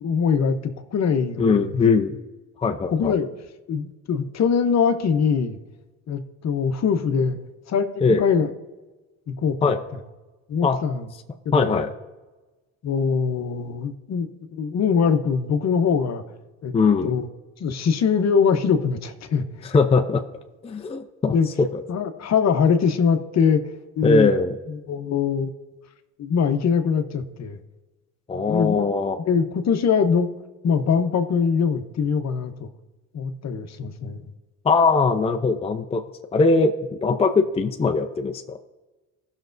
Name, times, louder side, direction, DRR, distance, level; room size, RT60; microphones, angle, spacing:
voice 1, 0.0-1.7 2.9-3.3 3.7-5.6 6.1-7.4 7.7-8.5 9.3-9.7 10.5-11.0 11.4-11.8 12.8-16.2 16.6-16.7 17.0-17.3 17.6-19.7 21.3-21.5 21.9-23.6 24.0-24.3 24.7-25.5 26.2-27.6 28.5-28.8 29.3-30.3 30.6-32.7 33.1-34.2, left 6 dB, 50° left, 8 dB, 0.9 m, -22 dB
voice 2, 1.4-2.2 2.6-3.1 8.0-8.2 9.6-9.8 10.6-10.8 11.5-11.9 16.7-17.1 19.6-20.2 20.6-21.8 24.0-24.6 28.3-29.2 34.6-36.0 36.3-38.6, left 4 dB, 15° left, 5 dB, 0.5 m, -20 dB
15.5 x 6.1 x 2.6 m, 1.2 s
supercardioid pair, 85°, 36 cm